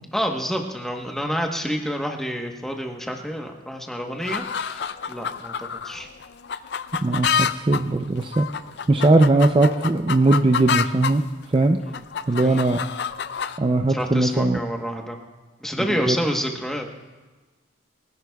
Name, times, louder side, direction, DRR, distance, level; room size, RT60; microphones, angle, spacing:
voice 1, 0.1-4.8 5.1-6.1 11.8-12.0 12.4-12.7 13.9-15.2 15.6-16.9, equal, ahead, 2 dB, 1.0 m, -28 dB
sound 1, 4.2-11.2 11.6-13.6, left 7 dB, 65° left, 0.4 m, -28 dB
voice 2, 7.0-8.5 8.9-11.2 11.5-11.8 12.3-12.8 13.6-14.6 15.9-16.2, right 2 dB, 25° right, 5 dB, 0.4 m, -19 dB
28.5 x 11.0 x 2.3 m, 1.3 s
head